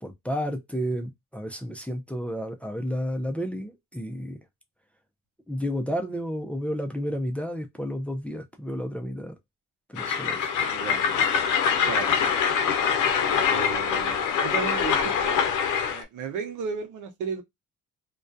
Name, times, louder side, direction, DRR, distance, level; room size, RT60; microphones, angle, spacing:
voice 1, 0.0-4.4 5.5-9.3 9.9-10.5, equal, 5° left, 0.4 m, -31 dB
Train, 10.0-16.0, left 7 dB, 80° left, 0.6 m, -24 dB
voice 2, 10.7-11.2 11.8-12.1 13.5-15.4 15.9-17.4, right 6 dB, 80° right, 0.6 m, -34 dB
2.2 x 2.2 x 2.5 m
cardioid pair, 90°, 30 cm